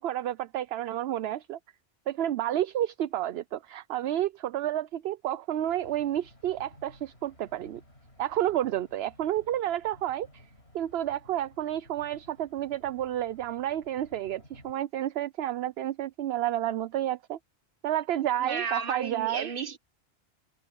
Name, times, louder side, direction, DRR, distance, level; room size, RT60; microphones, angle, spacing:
voice 1, 0.0-1.6 2.1-7.8 8.2-10.4 10.7-17.4 17.8-19.5, right 12 dB, 65° right, 0.8 m, -30 dB
sound 1, 5.6-14.7, left 1 dB, 55° left, 6.8 m, -56 dB
voice 2, 18.4-19.8, right 5 dB, 45° right, 1.3 m, -32 dB
omnidirectional pair, 1.3 m